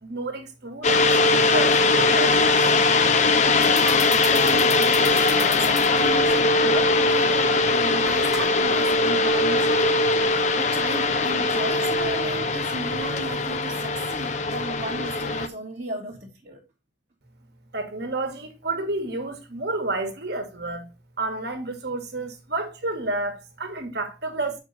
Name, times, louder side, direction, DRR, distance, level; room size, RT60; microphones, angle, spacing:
voice 1, 0.0-2.7 17.7-20.9 21.2-24.6, right 2 dB, 55° right, 1.5 m, -30 dB
sound 1, 0.8-15.5, left 3 dB, 35° left, 0.6 m, -21 dB
voice 2, 3.3-16.6, right 2 dB, 35° right, 1.2 m, -35 dB
sound 2, 3.5-13.6, equal, ahead, 0.8 m, -41 dB
7.0 x 4.5 x 4.0 m
head